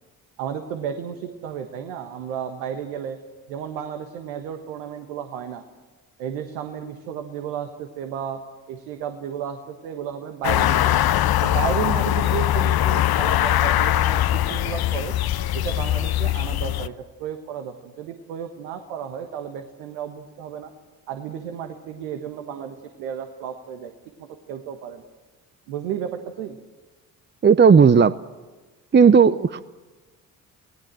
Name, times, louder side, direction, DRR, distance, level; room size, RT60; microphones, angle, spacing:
voice 1, 0.4-3.2 3.5-5.6 6.2-8.4 8.7-10.8 11.4-15.2 15.5-16.9 17.2-20.7 21.1-23.9 24.2-25.0 25.7-26.6, right 8 dB, 80° right, 6 dB, 1.6 m, -33 dB
sound 1, 10.4-16.9, left 13 dB, 55° left, 0.9 m, -21 dB
voice 2, 27.4-28.1 28.9-29.6, right 6 dB, 25° right, 14 dB, 0.7 m, -14 dB
28.0 x 18.5 x 7.7 m, 1.3 s
hypercardioid pair, 50°, 45 cm